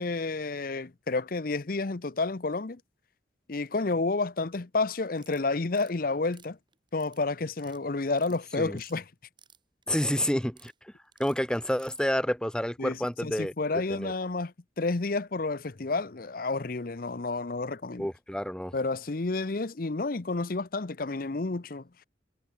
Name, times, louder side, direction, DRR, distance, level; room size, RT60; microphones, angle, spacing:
voice 1, 0.0-2.8 3.5-6.6 6.9-9.1 12.8-18.1 18.7-21.9, left 3 dB, 50° left, 0.8 m, -30 dB
sound 1, 5.1-5.9 6.2-7.2 7.5-7.8 8.1-9.0 9.2-10.1 10.4-10.7 11.1-12.0, right 8 dB, 25° right, 4.6 m, -57 dB
voice 2, 9.9-10.7 11.2-13.5 13.9-14.1 18.0-18.7, equal, 5° left, 1.6 m, -29 dB
head